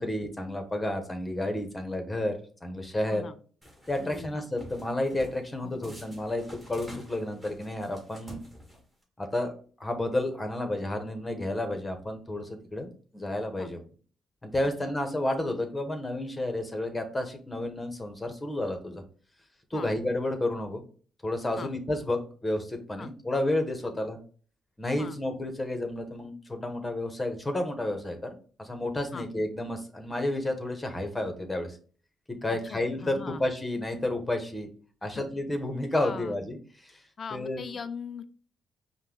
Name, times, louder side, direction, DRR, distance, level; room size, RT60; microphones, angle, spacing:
voice 1, 0.0-2.3 2.6-3.2 3.9-8.4 9.2-9.5 9.8-13.8 14.4-19.0 19.7-20.8 21.2-24.2 24.8-28.2 28.6-31.8 32.4-34.7 35.0-37.0 37.3-37.6, left 1 dB, 15° left, 5 dB, 1.0 m, -31 dB
sound 1, 3.6-4.2 4.6-5.4 5.8-9.0, equal, 10° right, 1.8 m, -48 dB
voice 2, 4.0-4.3 5.6-6.0 13.6-13.7 19.7-19.9 21.6-21.7 23.0-23.1 25.0-25.2 29.1-29.3 32.5-33.4 35.1-35.2 36.0-36.4 37.2-38.2, left 5 dB, 45° left, 12 dB, 0.4 m, -40 dB
5.3 x 2.2 x 3.8 m, 0.42 s
cardioid pair, 90°, 0 cm